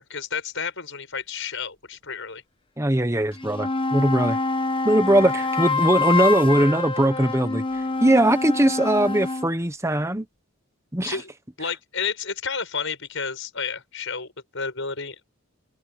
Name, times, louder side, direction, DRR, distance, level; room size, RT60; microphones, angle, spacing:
voice 1, 0.0-2.4 11.0-11.3 11.6-15.2, left 5 dB, 60° left, 7.4 m, -31 dB
voice 2, 2.8-4.4 4.8-7.6 8.0-10.3 10.9-11.2, right 1 dB, 15° right, 1.2 m, -20 dB
sound 1, 3.3-9.5, left 3 dB, 25° left, 1.1 m, -26 dB
open air
head